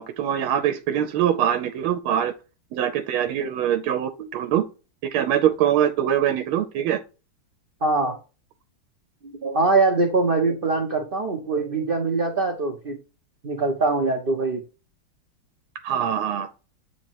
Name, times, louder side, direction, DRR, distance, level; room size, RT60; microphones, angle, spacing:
voice 1, 0.0-2.3 2.7-4.6 5.1-7.0 15.8-16.5, right 10 dB, 85° right, 1.4 m, -23 dB
voice 2, 7.8-8.2 9.2-13.0 13.4-14.6, right 3 dB, 60° right, 0.5 m, -23 dB
8.3 x 3.0 x 4.5 m
omnidirectional pair, 2.3 m